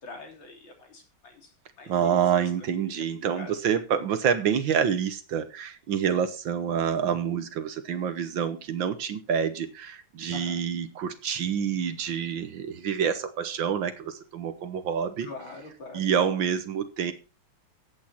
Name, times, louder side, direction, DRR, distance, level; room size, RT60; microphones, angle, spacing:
voice 1, 0.0-1.5 1.8-2.4 2.8-3.0 3.3-3.5 10.3-10.6 15.2-16.1, left 4 dB, 65° left, 4.1 m, -44 dB
voice 2, 1.9-15.3 15.9-17.1, right 8 dB, 65° right, 1.6 m, -27 dB
13.5 x 8.7 x 4.3 m
omnidirectional pair, 2.4 m